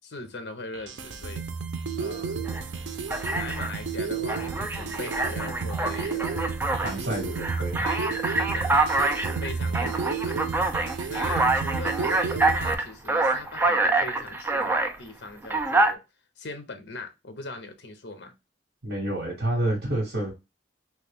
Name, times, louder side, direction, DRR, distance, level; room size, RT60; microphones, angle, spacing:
voice 1, 0.0-1.4 2.0-2.5 3.4-6.5 6.8-7.3 7.8-10.4 11.1-16.0 16.4-18.3, left 3 dB, 65° left, 0.7 m, -40 dB
sound 1, 0.7-12.7, right 5 dB, 85° right, 0.5 m, -32 dB
Alarm, 2.5-2.6 3.1-3.8 4.3-7.0 7.4-15.0 15.4-15.9, right 2 dB, 10° right, 0.3 m, -26 dB
voice 2, 6.8-7.8 18.8-20.3, right 1 dB, 65° right, 1.2 m, -28 dB
3.0 x 2.3 x 3.4 m
head